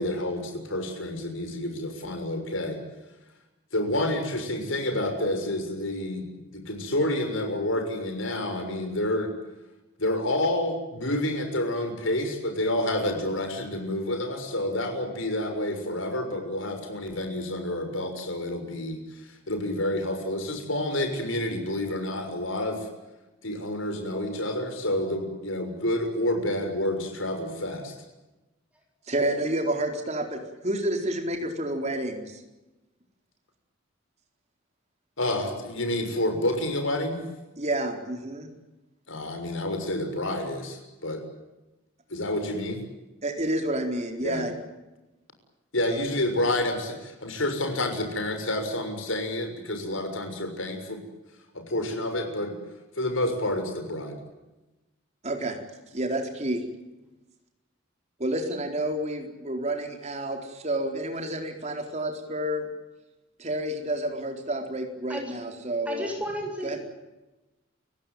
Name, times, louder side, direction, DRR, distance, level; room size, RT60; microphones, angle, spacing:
voice 1, 0.0-2.8 3.7-6.2 6.5-9.3 10.0-22.9 23.4-28.0 35.2-37.2 39.1-41.2 42.1-42.8 44.2-44.4 45.7-51.0 51.5-52.5 52.9-54.2, left 1 dB, 80° left, 6 dB, 6.5 m, -29 dB
voice 2, 29.1-32.4 37.6-38.5 43.2-44.5 45.9-46.0 55.2-55.6 55.9-56.6 58.2-62.7 63.4-66.1 66.6-66.8, right 1 dB, 35° right, 4 dB, 4.3 m, -29 dB
voice 3, 65.9-66.8, equal, 5° right, 2 dB, 7.5 m, -33 dB
29.5 x 17.0 x 9.2 m, 1.0 s
head